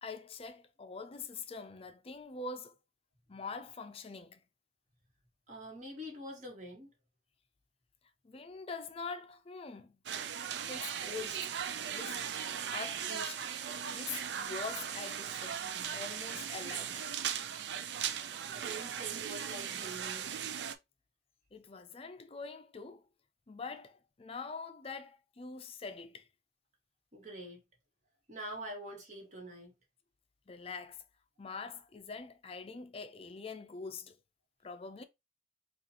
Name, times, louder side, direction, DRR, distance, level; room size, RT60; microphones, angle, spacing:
voice 1, 0.0-2.8 3.3-4.4 8.2-10.0 10.7-11.5 11.9-12.3 12.7-13.5 13.9-15.7 15.9-17.1 21.5-23.0 23.5-26.3 30.5-31.0 31.4-34.2 34.6-35.0, left 4 dB, 35° left, 0.4 m, -44 dB
voice 2, 5.5-6.9 18.5-20.3 27.1-27.6 28.3-29.7, right 1 dB, 45° right, 1.6 m, -45 dB
sound 1, 10.1-20.8, right 8 dB, 80° right, 0.4 m, -38 dB
5.0 x 2.4 x 2.8 m
head